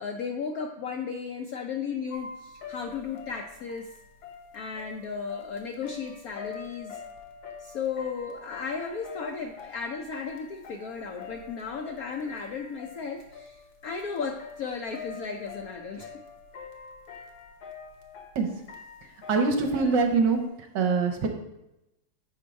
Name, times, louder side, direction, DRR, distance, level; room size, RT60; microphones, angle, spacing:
voice 1, 0.0-4.0 4.5-7.0 7.6-16.1, left 5 dB, 75° left, 3 dB, 0.8 m, -35 dB
sound 1, 2.1-20.5, left 5 dB, 90° left, 1.8 m, -45 dB
voice 2, 19.3-20.4 20.7-21.3, right 4 dB, 70° right, 4 dB, 1.5 m, -23 dB
7.7 x 4.5 x 5.1 m, 0.90 s
omnidirectional pair, 2.1 m